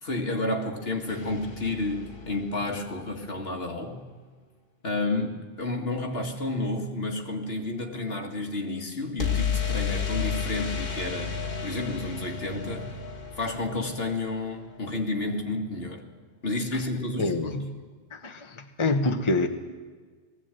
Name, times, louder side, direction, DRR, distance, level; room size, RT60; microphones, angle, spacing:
voice 1, 0.0-4.0 4.8-11.4 11.6-12.9 13.4-16.0 16.4-17.7, left 2 dB, 75° left, 2 dB, 2.3 m, -31 dB
sound 1, 1.1-3.1 9.2-15.0, left 6 dB, 55° left, 2.5 m, -32 dB
voice 2, 17.2-17.8 18.1-19.5, left 2 dB, 30° left, 6 dB, 1.2 m, -26 dB
19.5 x 15.5 x 9.1 m, 1.5 s
omnidirectional pair, 1.0 m